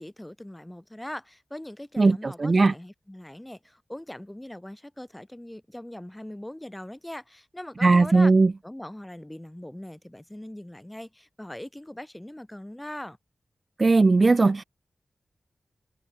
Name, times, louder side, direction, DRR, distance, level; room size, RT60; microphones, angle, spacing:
voice 1, 0.0-8.3 8.6-13.2, left 1 dB, 15° left, 2.1 m, -41 dB
voice 2, 2.0-2.7 7.8-8.5 13.8-14.6, right 3 dB, 50° right, 0.6 m, -18 dB
cardioid pair, 55°, 0 cm